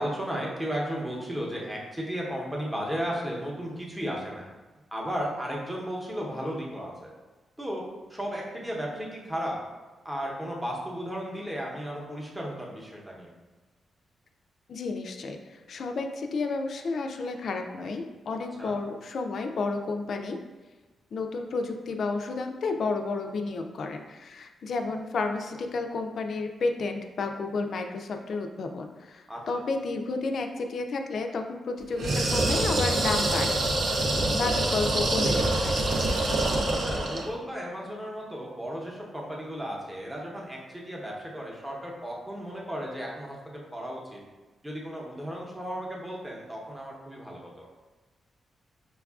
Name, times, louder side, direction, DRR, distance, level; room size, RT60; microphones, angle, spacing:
voice 1, 0.0-4.5 4.9-7.1 7.6-7.8 8.1-9.6 10.0-13.3 18.6-18.8 29.3-29.4 33.9-34.2 36.7-44.2 44.6-47.7, equal, 10° right, -2 dB, 0.8 m, -34 dB
voice 2, 14.7-20.4 21.1-33.6 34.3-35.9, left 3 dB, 60° left, 4 dB, 0.3 m, -31 dB
sound 1, 32.0-37.3, right 2 dB, 65° right, 0.6 m, -25 dB
5.2 x 2.3 x 2.3 m, 1.2 s
cardioid pair, 95°, 0 cm